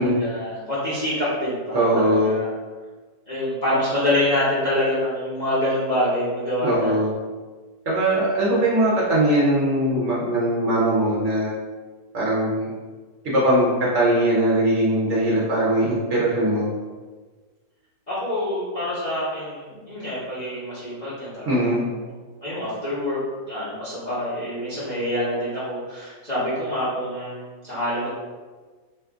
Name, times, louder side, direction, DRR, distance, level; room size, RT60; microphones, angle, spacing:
voice 1, 0.0-2.5 3.3-6.9 18.1-21.9 22.4-23.2 23.5-28.1, left 1 dB, 35° left, -11 dB, 0.8 m, -26 dB
voice 2, 1.7-2.4 6.6-7.1 7.9-11.5 12.1-12.7 13.2-16.7 21.4-21.9, right 1 dB, 60° right, -6 dB, 0.9 m, -20 dB
2.9 x 2.4 x 3.4 m, 1.4 s
omnidirectional pair, 1.7 m